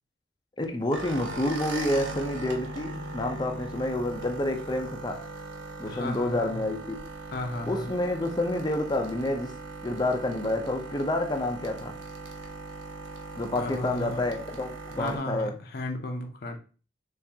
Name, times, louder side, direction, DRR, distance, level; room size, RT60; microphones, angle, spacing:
voice 1, 0.6-5.2 5.8-7.0 7.6-9.5 9.8-11.9 13.4-15.5, left 1 dB, 25° left, 0.6 m, -29 dB
sound 1, 0.9-15.2, right 2 dB, 80° right, 0.8 m, -39 dB
voice 2, 5.9-6.6 7.3-7.9 13.6-14.3 15.0-16.6, left 1 dB, 55° left, 0.7 m, -34 dB
6.5 x 2.5 x 2.8 m
head